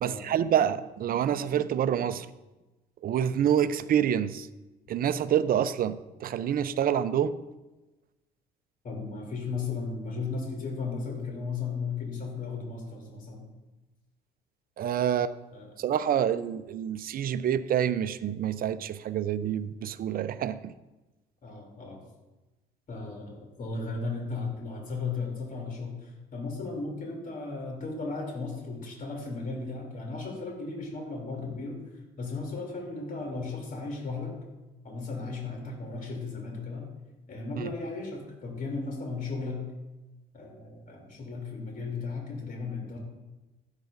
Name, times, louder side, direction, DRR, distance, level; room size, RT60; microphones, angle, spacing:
voice 1, 0.0-2.3 3.0-4.5 4.9-7.4 14.8-15.3 15.8-20.7, right 9 dB, 50° right, 14 dB, 0.6 m, -27 dB
voice 2, 8.8-13.5 15.5-15.8 21.4-22.1 22.9-34.3 34.8-36.9 37.3-39.7 40.3-43.0, left 4 dB, 50° left, 0 dB, 3.0 m, -35 dB
16.0 x 8.2 x 2.6 m, 1.1 s
supercardioid pair, 65°, 18 cm